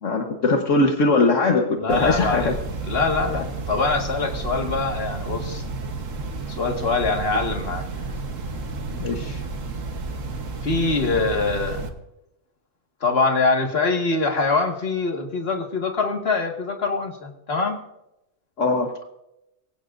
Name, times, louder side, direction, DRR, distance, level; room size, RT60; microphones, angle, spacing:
voice 1, 0.0-2.5 8.9-9.4 18.6-18.9, left 3 dB, 70° left, 3 dB, 1.6 m, -21 dB
voice 2, 1.8-2.6 2.9-5.6 6.5-7.9 10.6-11.9 13.0-17.8, left 3 dB, 50° left, 2 dB, 2.0 m, -24 dB
sound 1, 1.9-11.9, right 3 dB, 75° right, 1.6 m, -31 dB
24.0 x 16.5 x 2.6 m, 0.87 s
omnidirectional pair, 1.3 m